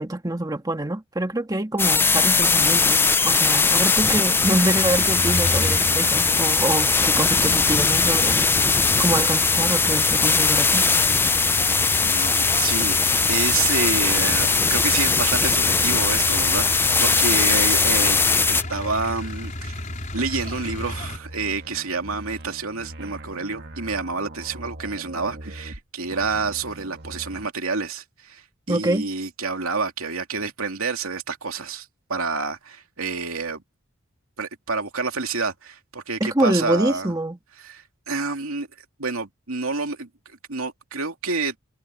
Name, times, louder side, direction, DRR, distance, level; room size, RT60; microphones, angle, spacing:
voice 1, 0.0-10.8 28.7-29.1 36.2-37.4, right 1 dB, 20° right, 1.7 m, -25 dB
sound 1, 1.8-18.6, left 4 dB, 10° left, 0.5 m, -20 dB
sound 2, 4.4-21.2, left 1 dB, 35° left, 4.8 m, -33 dB
voice 2, 12.0-18.2 18.5-19.8 20.1-33.6 34.4-37.1 37.6-38.7 39.0-41.6, right 4 dB, 80° right, 2.7 m, -28 dB
sound 3, 20.3-25.8 26.1-27.5, right 1 dB, 50° right, 1.8 m, -41 dB
head